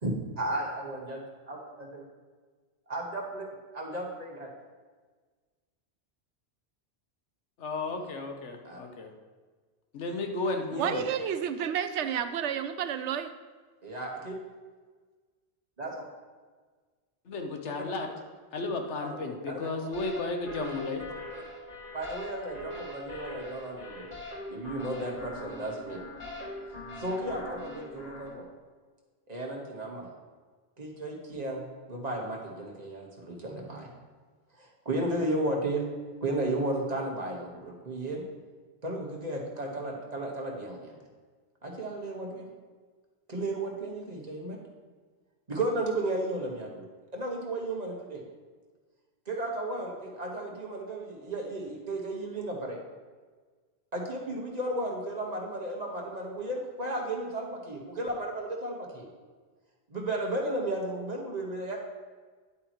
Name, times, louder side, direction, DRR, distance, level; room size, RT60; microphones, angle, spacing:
voice 1, 0.0-1.2 1.5-2.0 2.9-3.4 3.7-4.5 8.6-8.8 10.7-11.0 13.8-14.3 15.8-16.0 18.0-18.1 19.0-19.7 21.3-21.4 21.9-24.2 24.5-26.0 27.0-28.5 29.3-30.1 30.8-33.9 34.6-35.8 36.2-38.2 38.8-41.0 41.6-42.5 43.3-44.6 45.5-46.8 47.1-48.2 49.3-52.8 53.9-59.1 59.9-61.8, right 1 dB, 35° right, -1 dB, 1.6 m, -34 dB
voice 2, 7.6-9.1 9.9-11.1 17.3-18.1 18.5-21.0, left 3 dB, 85° left, 4 dB, 1.3 m, -33 dB
voice 3, 10.8-13.3, right 8 dB, 80° right, 10 dB, 0.9 m, -30 dB
sound 1, 19.9-28.3, left 1 dB, 45° left, 2.1 m, -42 dB
10.0 x 8.6 x 3.1 m, 1.4 s
omnidirectional pair, 1.2 m